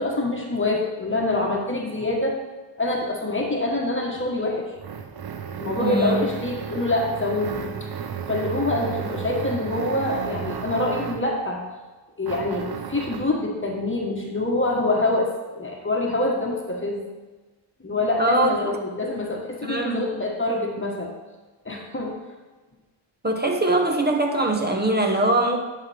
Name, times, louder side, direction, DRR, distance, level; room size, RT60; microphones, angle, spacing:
voice 1, 0.0-2.4 2.8-4.7 5.5-7.9 8.3-11.6 12.2-17.0 17.8-21.1 21.6-22.1, left 2 dB, 25° left, -1 dB, 1.3 m, -25 dB
sound 1, 4.1-11.4 12.2-13.4, right 7 dB, 55° right, 0.7 m, -33 dB
voice 2, 5.8-6.3 18.2-18.6 19.6-20.0 23.2-25.6, right 2 dB, 20° right, 3 dB, 1.0 m, -22 dB
10.5 x 5.9 x 3.4 m, 1.2 s
wide cardioid pair, 80°, 45 cm